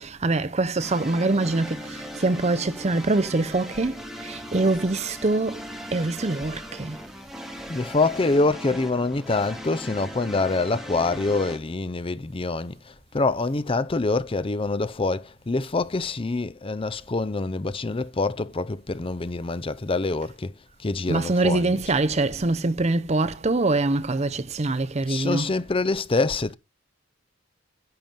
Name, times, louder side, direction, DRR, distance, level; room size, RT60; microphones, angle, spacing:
voice 1, 0.0-7.0 21.1-25.6, right 2 dB, 35° right, 0.6 m, -24 dB
sound 1, 0.8-11.6, equal, ahead, 2.1 m, -39 dB
voice 2, 7.7-20.5 20.8-21.9 25.1-26.6, left 3 dB, 25° left, 0.6 m, -25 dB
10.5 x 6.9 x 7.5 m
head